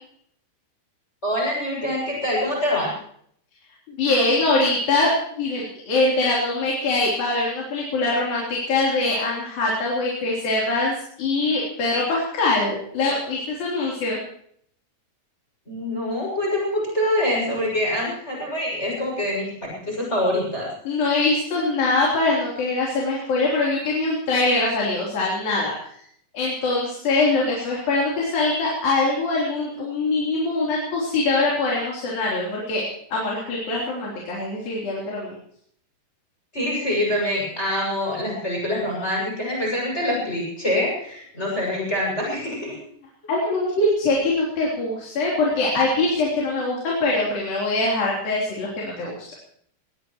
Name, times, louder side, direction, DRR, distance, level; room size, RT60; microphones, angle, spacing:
voice 1, 1.2-2.9 15.7-19.5 19.8-20.7 36.5-42.8, left 1 dB, 15° left, -2 dB, 7.0 m, -25 dB
voice 2, 3.9-5.1 5.4-14.2 20.9-25.7 26.3-32.9 33.1-35.4 43.3-49.2, left 2 dB, 80° left, -4 dB, 5.5 m, -23 dB
22.0 x 20.0 x 3.1 m, 0.65 s
omnidirectional pair, 4.1 m